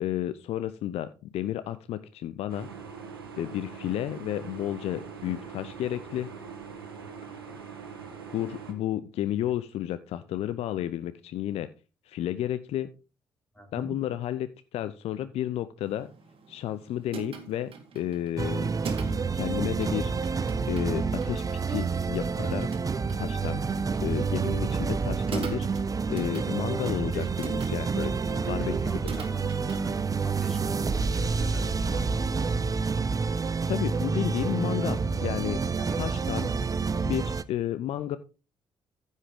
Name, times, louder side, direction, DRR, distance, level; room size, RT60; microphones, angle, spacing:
voice 1, 0.0-2.7 3.4-6.3 8.3-11.7 12.1-12.9 13.7-16.1 16.5-18.7 19.3-20.1 20.7-22.7 23.2-23.6 24.0-25.8 26.1-28.1 28.5-28.7 33.7-35.6 36.0-36.5 37.1-38.2, left 12 dB, 60° left, 13 dB, 0.6 m, -32 dB
sound 1, 2.5-8.7, right 6 dB, 85° right, 1.2 m, -42 dB
voice 2, 13.5-14.0 27.0-27.3 28.0-30.0 30.2-32.3 35.7-36.2, equal, 5° left, 0 dB, 4.7 m, -44 dB
sound 2, 15.8-29.9, right 5 dB, 50° right, 2.1 m, -44 dB
sound 3, 18.4-37.4, right 5 dB, 30° right, 0.7 m, -28 dB
14.5 x 5.5 x 3.6 m, 0.32 s
figure-of-eight pair, 45°, 12 cm